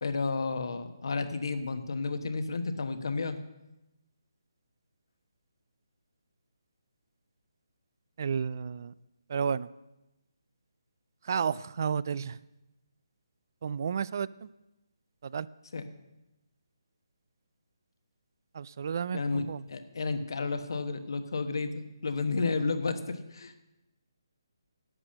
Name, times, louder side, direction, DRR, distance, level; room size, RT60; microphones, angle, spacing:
voice 1, 0.0-3.4 15.7-15.8 19.1-23.5, left 4 dB, 65° left, 9 dB, 1.2 m, -32 dB
voice 2, 8.2-8.9 9.3-9.7 11.2-12.4 13.6-14.5 15.2-15.5 18.5-19.6, right 7 dB, 45° right, 20 dB, 0.3 m, -32 dB
11.0 x 8.4 x 6.5 m, 0.95 s
hypercardioid pair, 160°, 2 cm